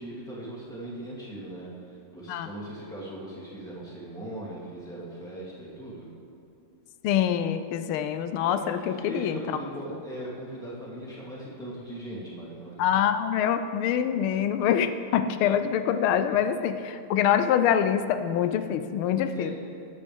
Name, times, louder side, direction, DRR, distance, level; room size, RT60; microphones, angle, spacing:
voice 1, 0.0-6.1 8.4-8.7 9.0-13.0 19.3-19.5, right 1 dB, ahead, -8 dB, 2.7 m, -39 dB
voice 2, 7.0-9.6 12.8-19.5, left 9 dB, 90° left, 10 dB, 1.5 m, -25 dB
19.5 x 8.4 x 3.5 m, 2.4 s
omnidirectional pair, 2.3 m